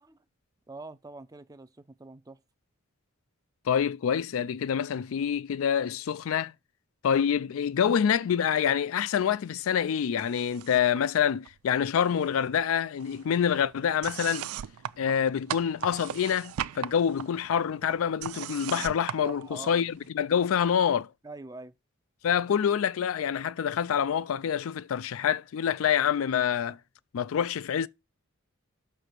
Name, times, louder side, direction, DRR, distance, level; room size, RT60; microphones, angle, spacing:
voice 1, 0.7-2.4 19.2-19.8 21.2-21.8, right 3 dB, 15° right, 0.5 m, -44 dB
voice 2, 3.7-6.5 7.0-14.5 15.0-21.1 22.2-26.8 27.1-27.9, left 8 dB, 70° left, 0.4 m, -26 dB
sound 1, 10.2-11.0 11.2-12.3 12.5-20.1, right 10 dB, 85° right, 0.3 m, -39 dB
6.0 x 4.5 x 6.5 m
head